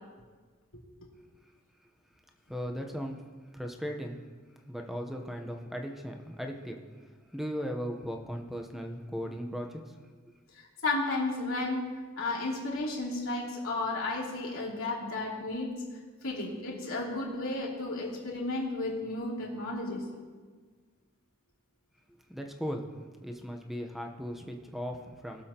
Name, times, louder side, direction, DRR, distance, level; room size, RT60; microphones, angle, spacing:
voice 1, 2.5-3.2 3.5-4.2 4.7-7.1 7.3-9.9 22.3-22.9 23.2-25.4, equal, ahead, 3 dB, 0.8 m, -37 dB
voice 2, 10.5-11.9 12.2-15.7 16.2-20.0, left 2 dB, 75° left, -5 dB, 2.9 m, -33 dB
20.5 x 7.2 x 2.9 m, 1.5 s
head